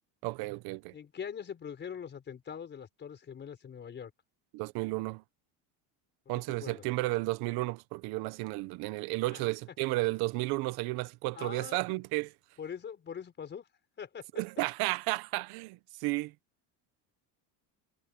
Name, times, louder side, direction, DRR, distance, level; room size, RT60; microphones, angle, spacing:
voice 1, 0.2-0.9 4.5-5.2 6.3-12.3 14.4-16.3, right 21 dB, 65° right, 0.8 m, -33 dB
voice 2, 0.9-4.1 6.2-6.3 6.6-6.8 9.3-9.5 11.3-11.8 12.6-13.7 14.0-14.3, left 7 dB, 25° left, 4.8 m, -42 dB
cardioid pair, 170°, 40 cm